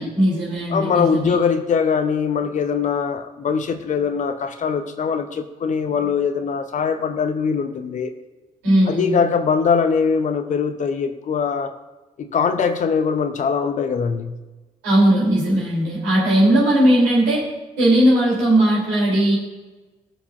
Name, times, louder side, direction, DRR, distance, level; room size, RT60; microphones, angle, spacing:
voice 1, 0.0-1.3 8.6-9.1 14.8-17.4 17.8-19.3, right 1 dB, 65° right, -5 dB, 3.5 m, -18 dB
voice 2, 0.7-8.1 8.9-11.7 12.2-14.4, left 6 dB, 40° left, 9 dB, 0.9 m, -22 dB
18.5 x 7.0 x 2.6 m, 1.2 s
figure-of-eight pair, 45°, 19 cm